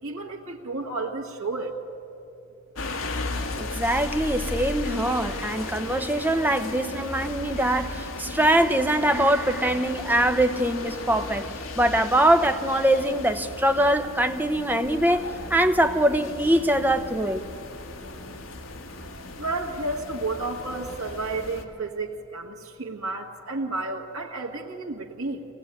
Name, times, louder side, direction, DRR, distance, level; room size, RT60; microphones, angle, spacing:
voice 1, 0.0-1.8 19.4-25.5, right 3 dB, 80° right, -3 dB, 1.8 m, -31 dB
sound 1, 2.8-21.6, left 2 dB, 70° left, 1.7 m, -36 dB
voice 2, 3.6-11.5 11.7-15.2 15.5-17.4, right 1 dB, 10° right, 7 dB, 0.9 m, -23 dB
24.0 x 18.5 x 9.8 m, 2.8 s
head